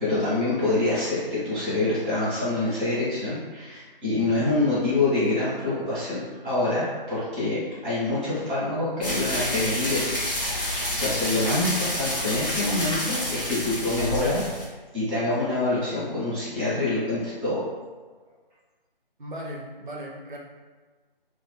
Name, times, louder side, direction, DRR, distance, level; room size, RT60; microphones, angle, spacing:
voice 1, 0.0-10.1 10.5-14.4 14.9-17.6, left 2 dB, 5° right, -18 dB, 0.7 m, -26 dB
sound 1, 9.0-14.7, left 1 dB, 65° left, 1.1 m, -29 dB
voice 2, 19.2-20.4, equal, 55° right, -1 dB, 0.6 m, -37 dB
2.5 x 2.5 x 2.2 m, 1.4 s
figure-of-eight pair, 155°, 29 cm